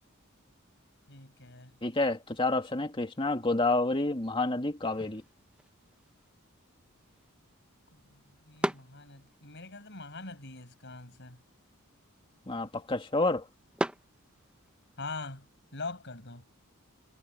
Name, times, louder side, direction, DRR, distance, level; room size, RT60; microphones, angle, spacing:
voice 1, 1.1-1.8 7.9-11.4 15.0-16.4, left 3 dB, 55° left, 6.6 m, -43 dB
voice 2, 1.8-5.2 12.5-13.5, left 2 dB, 25° left, 2.5 m, -29 dB
sound 1, 4.9-14.9, equal, 5° right, 1.1 m, -42 dB
head